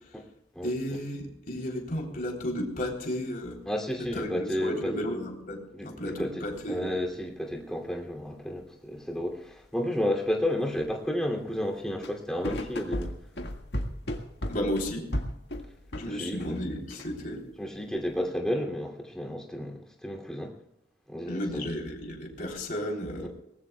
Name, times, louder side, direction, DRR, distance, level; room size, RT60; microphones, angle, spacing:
voice 1, 0.6-3.6 4.0-6.9 14.5-15.1 16.0-17.4 21.3-23.3, equal, 50° left, 0 dB, 3.6 m, -33 dB
voice 2, 3.7-4.9 5.7-13.1 16.1-16.4 17.6-20.5 21.1-21.7, left 1 dB, 5° left, -1 dB, 2.7 m, -32 dB
sound 1, 6.5-6.8 7.0-7.1 7.6-7.9 8.5-8.6 9.4-11.1 11.5-16.6 16.9-17.5 18.0-18.2, left 1 dB, 65° left, 1.8 m, -35 dB
23.0 x 19.5 x 2.3 m, 0.83 s
head